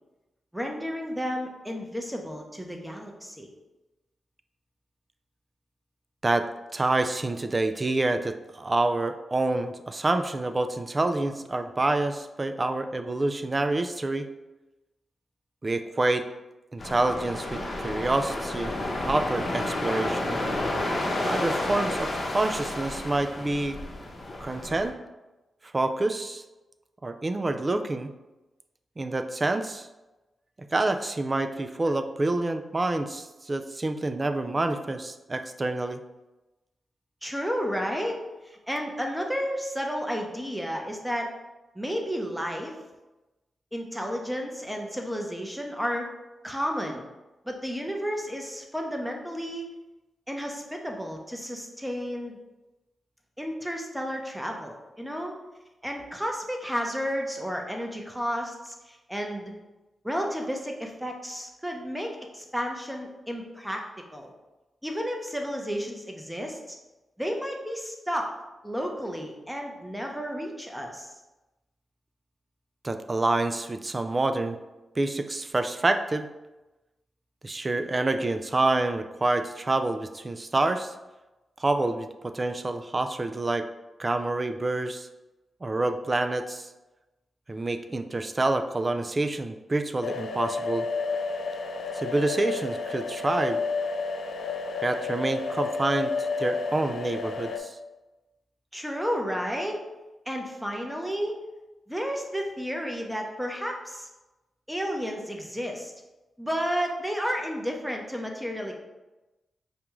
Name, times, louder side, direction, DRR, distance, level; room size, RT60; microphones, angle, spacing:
voice 1, 0.5-3.5 37.2-38.2 38.4-41.3 41.8-42.7 43.7-46.1 46.4-47.0 47.5-49.7 50.3-52.4 53.4-55.3 55.8-59.5 60.0-63.8 64.1-64.3 64.8-66.8 67.2-68.3 68.6-71.1 98.7-99.8 100.3-101.4 101.9-104.1 104.7-105.9 106.4-108.7, equal, 5° right, 1 dB, 0.8 m, -32 dB
voice 2, 6.7-14.3 15.6-16.3 16.7-20.4 21.2-23.8 24.4-24.9 25.7-26.4 27.0-28.1 29.0-29.9 30.7-36.0 72.8-74.6 75.0-76.3 77.4-80.9 81.6-83.6 84.0-85.1 85.6-86.7 87.5-90.9 91.9-93.6 94.8-97.8, right 2 dB, 35° right, 8 dB, 0.3 m, -27 dB
sound 1, 16.8-24.9, left 1 dB, 45° left, 0.8 m, -31 dB
sound 2, 90.0-97.6, left 4 dB, 70° left, 0.4 m, -31 dB
5.0 x 2.3 x 3.0 m, 1.1 s
cardioid pair, 55°, 0 cm